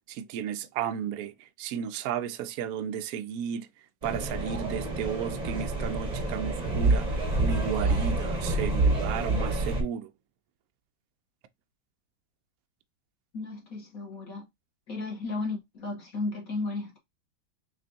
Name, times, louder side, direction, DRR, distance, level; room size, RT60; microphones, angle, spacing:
voice 1, 0.1-1.3 1.6-3.7 4.0-7.1 7.4-10.1, right 8 dB, 80° right, 0.8 m, -33 dB
sound 1, 4.0-9.8, right 2 dB, 35° right, 0.6 m, -27 dB
voice 2, 13.3-14.4 14.9-17.0, left 3 dB, 50° left, 1.5 m, -34 dB
5.8 x 2.5 x 2.7 m
omnidirectional pair, 2.1 m